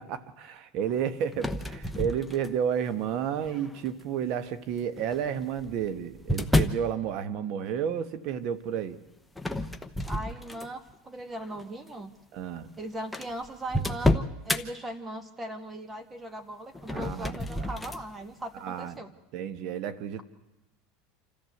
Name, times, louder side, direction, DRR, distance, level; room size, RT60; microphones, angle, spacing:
voice 1, 0.0-9.0 12.3-12.7 16.9-17.7 18.6-19.0 19.3-20.2, right 8 dB, 55° right, 13 dB, 1.5 m, -31 dB
sound 1, 1.3-2.8 3.4-3.9 5.0-6.9 9.4-10.9 11.4-11.6 12.4-12.5 12.7-12.8 13.1-14.6 16.7-18.0, left 1 dB, 5° left, 1.0 m, -29 dB
voice 2, 10.1-12.1 12.8-19.1, right 1 dB, 15° right, 9 dB, 1.9 m, -39 dB
27.0 x 14.0 x 8.0 m, 0.97 s
supercardioid pair, 125°, 0 cm